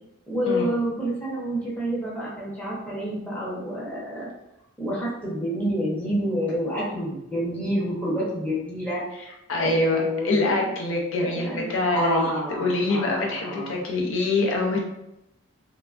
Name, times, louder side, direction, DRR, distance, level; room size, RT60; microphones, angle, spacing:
voice 1, 0.3-4.3 4.8-9.3 9.6-10.7 11.2-13.8, equal, 5° left, -7 dB, 0.7 m, -28 dB
voice 2, 9.5-14.8, left 2 dB, 65° left, 0 dB, 0.4 m, -25 dB
3.1 x 2.2 x 2.4 m, 0.87 s
head